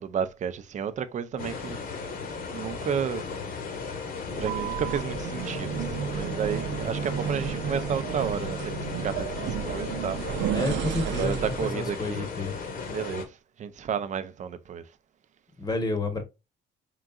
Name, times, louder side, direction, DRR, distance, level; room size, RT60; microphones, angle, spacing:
voice 1, 0.0-1.8 2.5-3.3 4.4-10.6 11.0-12.3 12.9-14.8, right 7 dB, 40° right, 0.5 m, -32 dB
sound 1, 1.4-13.2, left 5 dB, 50° left, 1.1 m, -36 dB
sound 2, 4.3-11.8, right 9 dB, 85° right, 0.6 m, -32 dB
voice 2, 10.5-12.6 15.6-16.2, left 2 dB, 20° left, 1.0 m, -30 dB
3.8 x 3.6 x 2.3 m
cardioid pair, 130°, 18 cm